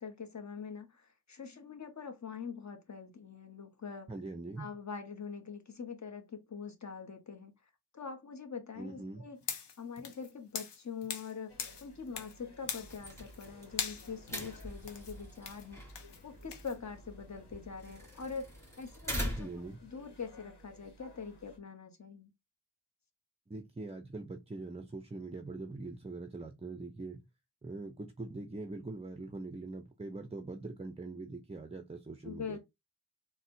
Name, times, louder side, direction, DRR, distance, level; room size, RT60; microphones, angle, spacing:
voice 1, 0.0-4.1 4.6-7.5 7.9-9.4 9.8-11.5 11.8-18.5 18.8-22.3 32.2-32.6, left 5 dB, 45° left, 0.9 m, -44 dB
voice 2, 4.1-4.7 8.8-9.3 19.4-19.8 23.5-27.2 27.6-32.6, right 3 dB, 15° right, 0.4 m, -43 dB
sound 1, 9.4-11.3 11.6-12.4 12.6-13.5 13.8-16.7, left 6 dB, 90° left, 0.7 m, -41 dB
sound 2, 11.5-21.6, equal, 70° left, 1.1 m, -59 dB
sound 3, 12.8-19.8, equal, 5° left, 1.7 m, -43 dB
4.0 x 2.1 x 2.6 m
wide cardioid pair, 60°, 40 cm